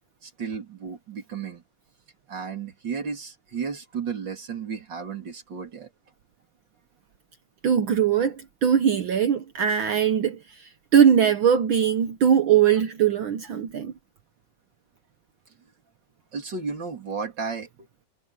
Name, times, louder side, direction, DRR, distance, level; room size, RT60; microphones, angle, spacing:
voice 1, 0.2-1.6 2.3-5.9 16.3-17.7, right 5 dB, 35° right, 3.6 m, -33 dB
voice 2, 7.6-13.9, right 8 dB, 75° right, 1.1 m, -21 dB
omnidirectional pair, 3.5 m